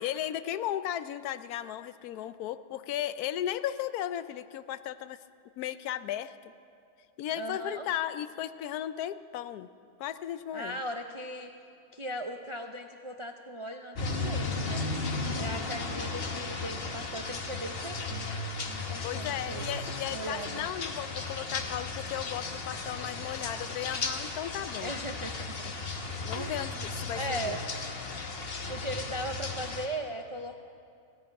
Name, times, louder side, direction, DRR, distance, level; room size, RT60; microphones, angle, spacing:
voice 1, 0.0-5.2 5.6-6.4 7.2-9.7 10.0-10.8 19.0-24.9 26.2-27.6, left 11 dB, 85° left, 14 dB, 1.1 m, -35 dB
voice 2, 7.3-7.9 10.5-11.5 11.9-14.9 15.3-18.4 18.6-19.7 20.1-20.7 24.8-25.5 26.3-26.6 27.2-27.6 28.7-30.6, right 1 dB, 50° right, 4 dB, 0.3 m, -38 dB
sound 1, 13.9-29.9, left 3 dB, 45° left, 1.2 m, -35 dB
16.0 x 10.0 x 8.7 m, 2.5 s
omnidirectional pair, 1.6 m